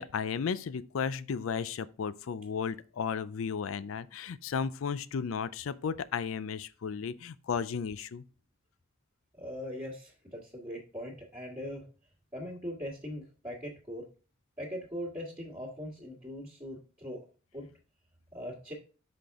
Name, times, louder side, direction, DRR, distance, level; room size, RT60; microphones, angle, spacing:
voice 1, 0.0-8.2, left 6 dB, 70° left, 0.4 m, -34 dB
voice 2, 9.3-11.8 12.3-14.0 14.6-17.2 17.5-17.7 18.3-18.7, equal, 20° right, 1.6 m, -40 dB
5.9 x 5.2 x 3.5 m
head